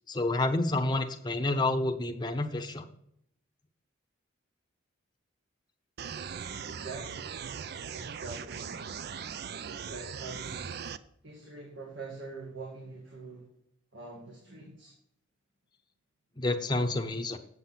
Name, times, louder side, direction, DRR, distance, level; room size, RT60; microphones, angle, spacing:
voice 1, 0.1-2.9 16.4-17.4, left 2 dB, 20° left, 4 dB, 0.7 m, -29 dB
sound 1, 6.0-11.0, right 7 dB, 50° right, 0.4 m, -39 dB
voice 2, 6.6-7.3 7.9-9.0 9.7-10.8 11.2-13.5 13.9-14.9, right 3 dB, 65° right, -1 dB, 1.9 m, -44 dB
7.9 x 7.5 x 5.6 m, 0.70 s
head